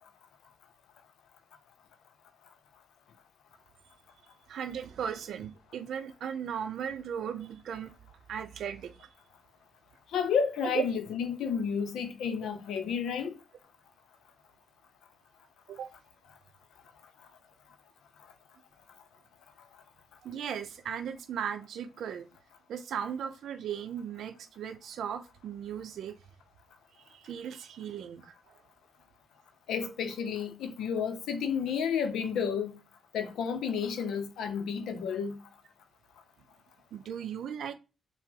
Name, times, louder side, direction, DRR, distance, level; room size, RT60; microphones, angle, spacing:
voice 1, 4.5-7.9 8.3-9.1 10.7-10.8 15.7-15.9 20.2-22.3 22.7-26.2 27.1-28.6 36.9-37.7, right 8 dB, 75° right, 0.5 m, -37 dB
voice 2, 10.1-13.4 29.7-32.8 33.1-35.4, left 7 dB, 80° left, 0.5 m, -31 dB
4.5 x 2.0 x 3.8 m
supercardioid pair, 50°, 0 cm